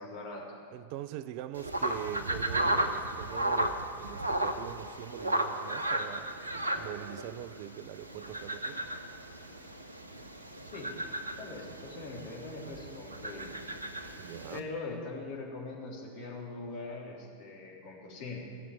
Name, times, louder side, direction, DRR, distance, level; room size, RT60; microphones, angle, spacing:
voice 1, 0.0-0.6 10.6-10.9 11.4-13.6 13.9-14.1 14.5-18.4, left 3 dB, 50° left, 3.4 m, -42 dB
voice 2, 0.7-8.9 14.2-14.7, right 12 dB, 45° right, 0.4 m, -43 dB
sound 1, 1.5-14.6, right 1 dB, 80° right, 0.8 m, -35 dB
15.0 x 7.0 x 9.1 m
figure-of-eight pair, 90°, 0 cm